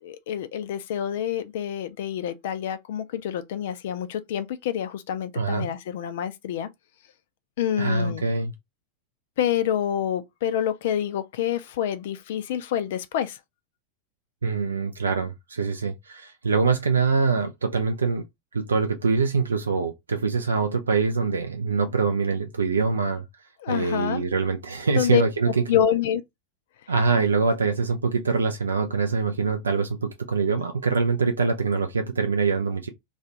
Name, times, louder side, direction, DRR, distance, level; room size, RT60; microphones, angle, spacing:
voice 1, 0.0-6.7 7.6-8.2 9.4-13.4 23.6-24.2 25.0-25.2 25.7-26.2, left 10 dB, 55° left, 0.3 m, -27 dB
voice 2, 5.3-5.7 7.8-8.5 14.4-18.2 18.5-23.2 23.7-25.6 26.9-32.9, right 4 dB, 75° right, 0.4 m, -24 dB
2.3 x 2.3 x 2.8 m
figure-of-eight pair, 90°, 0 cm